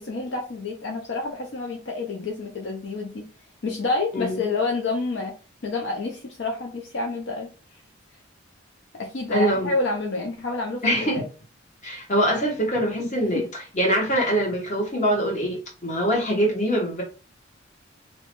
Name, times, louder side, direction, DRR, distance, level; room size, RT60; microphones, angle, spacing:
voice 1, 0.0-3.3 3.6-5.3 5.6-7.5 9.0-11.3 13.0-13.1 13.3-13.5, left 3 dB, 65° left, 0.5 m, -28 dB
voice 2, 4.1-4.4 9.3-9.7 10.8-11.2 11.8-13.4 13.7-17.0, equal, 35° left, 1.0 m, -23 dB
2.7 x 2.1 x 2.9 m
head